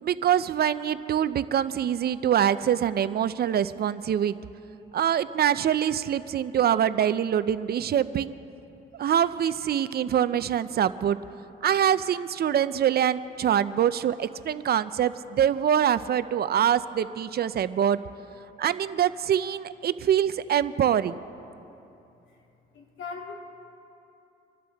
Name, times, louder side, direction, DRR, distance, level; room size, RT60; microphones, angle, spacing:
voice 1, 0.0-4.4 4.9-8.4 8.9-11.2 11.6-18.0 18.6-21.2, right 9 dB, 50° right, 14 dB, 0.5 m, -24 dB
voice 2, 22.7-23.3, left 5 dB, 75° left, 0 dB, 2.4 m, -38 dB
26.5 x 12.5 x 3.5 m, 2.8 s
cardioid pair, 90°, 20 cm